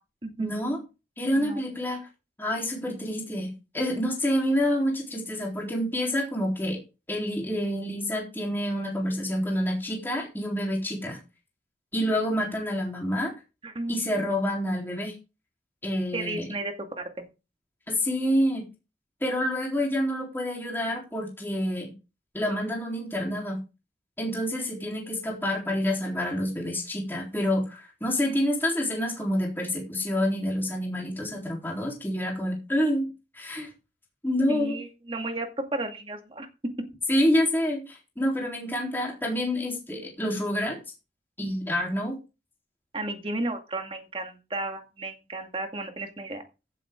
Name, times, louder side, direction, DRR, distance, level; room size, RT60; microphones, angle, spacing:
voice 1, 0.4-0.8 1.2-2.1 2.4-6.8 7.1-11.2 11.9-13.3 13.9-15.1 15.8-16.5 17.9-18.6 19.2-21.9 22.3-23.6 24.2-33.1 33.3-33.7 34.2-34.8 37.1-40.8 41.4-42.2, equal, 10° left, -2 dB, 3.7 m, -28 dB
voice 2, 13.6-14.0 16.1-17.1 34.5-36.5 42.9-46.4, right 2 dB, 30° right, 5 dB, 2.1 m, -33 dB
16.0 x 7.8 x 3.8 m, 0.29 s
head